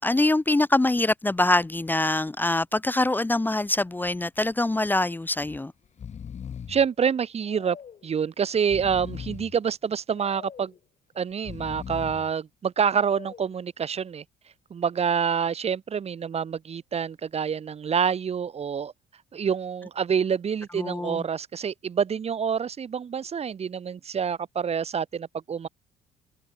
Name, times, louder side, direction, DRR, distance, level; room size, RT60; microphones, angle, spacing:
voice 1, 0.0-5.7 20.8-21.2, left 2 dB, 10° left, 1.2 m, -24 dB
Breathing, 3.8-4.1 4.4-4.5 5.4-5.6 5.8-6.9 7.4-8.1 8.5-9.6 10.1-10.8 11.3-12.3 12.9-13.5, left 7 dB, 45° left, 7.1 m, -40 dB
voice 2, 6.7-7.8 8.0-10.7 11.2-14.2 14.7-18.9 19.3-25.7, right 7 dB, 40° right, 2.0 m, -27 dB
open air
cardioid pair, 110°, 17 cm